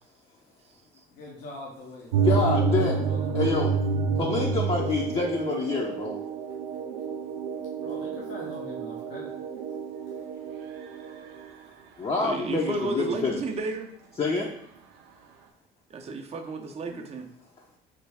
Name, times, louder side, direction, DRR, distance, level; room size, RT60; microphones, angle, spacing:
voice 1, 1.1-3.7 7.7-9.3, left 2 dB, 80° left, -4 dB, 0.8 m, -43 dB
sound 1, 2.1-11.5, right 5 dB, 85° right, 0.4 m, -29 dB
voice 2, 2.2-3.0 3.3-3.8 4.2-6.2 12.0-13.4 14.2-14.5 16.9-17.0, left 3 dB, 25° left, -2 dB, 0.5 m, -27 dB
voice 3, 12.2-13.9 15.9-17.3, right 3 dB, 30° right, 4 dB, 0.5 m, -32 dB
3.2 x 2.2 x 3.4 m, 0.73 s
supercardioid pair, 70°, 21 cm